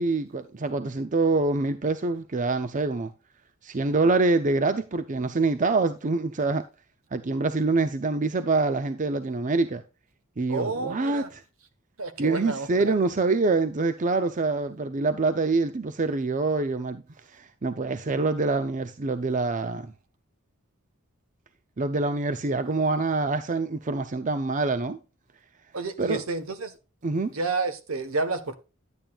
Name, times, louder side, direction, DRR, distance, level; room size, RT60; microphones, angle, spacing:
voice 1, 0.0-3.1 3.6-6.6 7.1-9.8 10.4-11.3 12.2-17.0 17.3-19.9 21.8-25.0 26.0-26.2 27.0-27.4, right 3 dB, 35° right, 0.6 m, -25 dB
voice 2, 10.5-11.3 12.0-13.0 25.7-26.8 27.3-28.5, right 3 dB, 70° right, 1.3 m, -30 dB
10.5 x 8.9 x 2.4 m
head